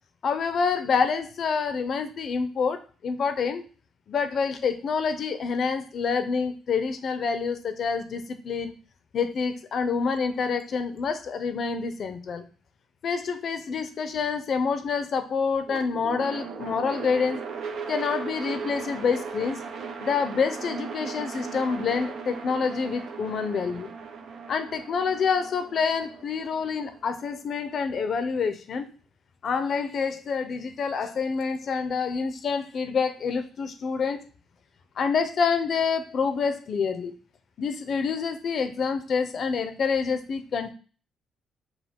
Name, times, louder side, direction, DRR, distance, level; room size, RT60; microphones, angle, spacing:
voice 1, 0.2-3.6 4.1-8.8 9.1-12.4 13.0-17.4 17.9-19.6 20.0-23.9 24.5-28.9 29.4-34.2 35.0-37.1 37.6-40.7, left 5 dB, 55° left, 9 dB, 0.6 m, -27 dB
sound 1, 15.7-27.8, right 5 dB, 70° right, 0.8 m, -38 dB
6.1 x 2.3 x 3.6 m, 0.37 s
cardioid pair, 90°, 0 cm